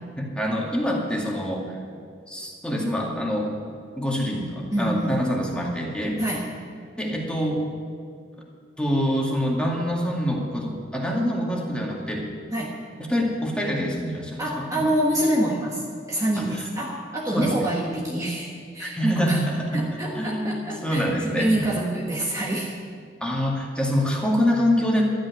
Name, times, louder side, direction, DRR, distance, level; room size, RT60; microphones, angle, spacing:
voice 1, 0.2-1.6 2.3-3.5 4.0-6.2 7.0-7.6 8.8-12.2 13.1-14.8 16.5-16.6 17.3-17.7 18.8-19.9 20.2-20.6 20.8-21.6 23.2-25.0, equal, 5° left, -2 dB, 2.2 m, -25 dB
voice 2, 4.7-5.2 6.2-6.6 12.5-12.8 14.4-19.4 19.7-22.8, right 1 dB, 20° right, -4 dB, 1.4 m, -26 dB
12.5 x 9.0 x 9.6 m, 2.2 s
head